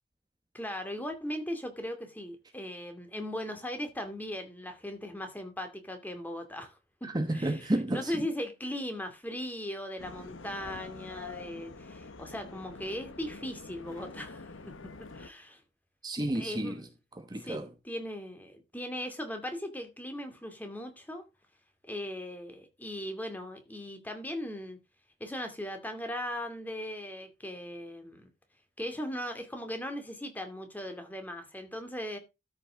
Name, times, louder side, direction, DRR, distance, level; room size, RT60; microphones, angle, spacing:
voice 1, 0.5-7.1 7.3-7.5 7.9-14.5 15.1-15.6 16.3-16.8 17.5-21.2 21.8-24.8 25.2-28.3 28.8-32.2, left 1 dB, 10° left, 2.4 m, -38 dB
voice 2, 7.0-8.3 16.0-17.7, right 1 dB, 20° right, 1.0 m, -32 dB
sound 1, 10.0-15.3, left 4 dB, 90° left, 1.2 m, -46 dB
13.0 x 6.1 x 5.0 m
head